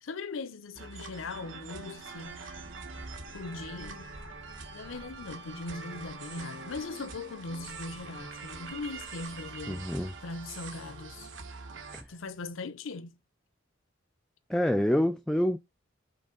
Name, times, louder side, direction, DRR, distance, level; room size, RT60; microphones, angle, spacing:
voice 1, 0.0-2.6 3.3-4.2 4.7-9.9 10.2-11.3 12.1-13.2, left 3 dB, 75° left, 0.6 m, -40 dB
sound 1, 0.7-12.0, right 4 dB, 65° right, 1.1 m, -44 dB
sound 2, 1.4-12.5, equal, 85° right, 3.5 m, -56 dB
voice 2, 9.7-10.1 11.9-12.1 14.5-15.6, left 1 dB, 5° left, 0.3 m, -27 dB
7.8 x 3.4 x 3.8 m
head